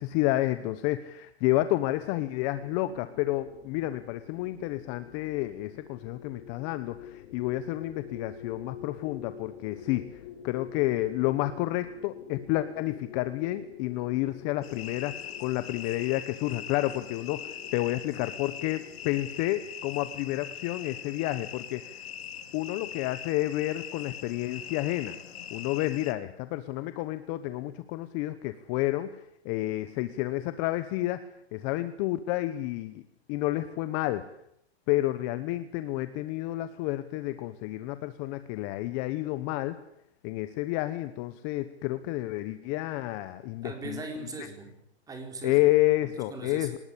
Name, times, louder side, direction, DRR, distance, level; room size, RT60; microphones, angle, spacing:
voice 1, 0.0-22.0 22.5-25.1 25.5-33.0 33.3-34.2 34.9-39.8 40.2-44.0 45.4-46.8, left 16 dB, 25° left, 12 dB, 1.0 m, -30 dB
sound 1, 2.5-19.4, left 8 dB, 45° left, 3.7 m, -47 dB
sound 2, 14.6-26.1, left 9 dB, 65° left, 2.9 m, -41 dB
voice 2, 43.6-44.7 45.1-45.6 46.3-46.8, right 3 dB, 10° right, 4 dB, 4.3 m, -39 dB
23.5 x 20.0 x 8.5 m, 0.74 s
hypercardioid pair, 155°, 33 cm